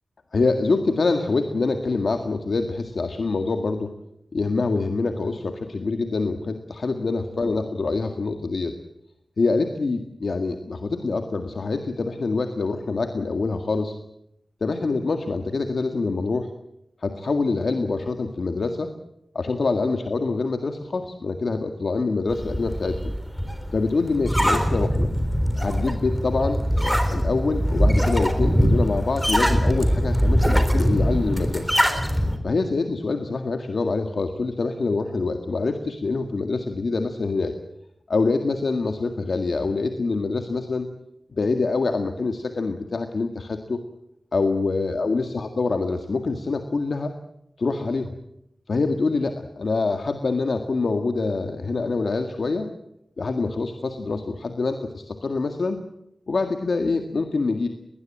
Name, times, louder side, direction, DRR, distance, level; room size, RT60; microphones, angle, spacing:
voice 1, 0.3-3.9 4.3-8.8 9.4-14.0 14.6-16.5 17.0-18.9 19.3-23.1 23.7-25.1 25.6-31.7 32.4-37.6 38.1-40.9 41.3-43.8 44.3-47.1 47.6-48.1 48.7-52.7 53.2-55.8 56.3-57.7, left 3 dB, 65° left, 6 dB, 1.9 m, -25 dB
sound 1, 22.3-32.4, equal, ahead, 3.7 m, -22 dB
21.0 x 19.5 x 8.9 m, 0.79 s
wide cardioid pair, 100°, 0 cm